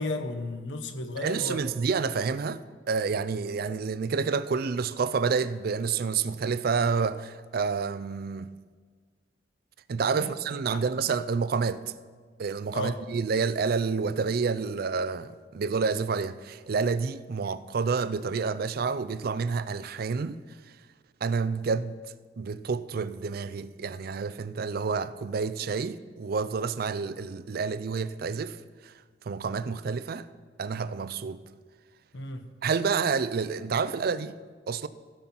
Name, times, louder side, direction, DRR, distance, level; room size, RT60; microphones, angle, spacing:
voice 1, 0.0-1.6 10.2-10.3 10.7-10.8 12.7-13.0 32.1-32.5, left 2 dB, 75° left, 0.9 m, -34 dB
voice 2, 1.2-2.6 2.9-8.5 9.9-11.8 12.4-20.4 21.2-21.9 22.4-28.6 28.8-28.9 29.3-30.3 30.6-31.4 32.6-34.3 34.7-34.9, right 5 dB, 55° right, 0.4 m, -29 dB
16.0 x 5.6 x 5.9 m
head